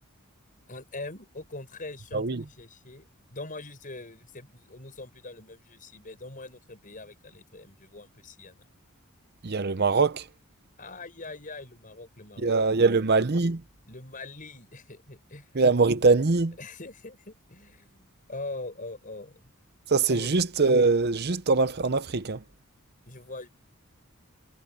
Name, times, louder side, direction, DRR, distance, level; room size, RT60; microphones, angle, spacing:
voice 1, 0.7-8.7 10.8-13.0 13.9-15.5 16.6-19.5 20.1-20.3 23.1-23.5, left 2 dB, 40° left, 6.0 m, -42 dB
voice 2, 2.1-2.4 9.4-10.2 12.4-13.6 15.5-16.5 19.9-22.4, right 4 dB, 45° right, 0.8 m, -23 dB
head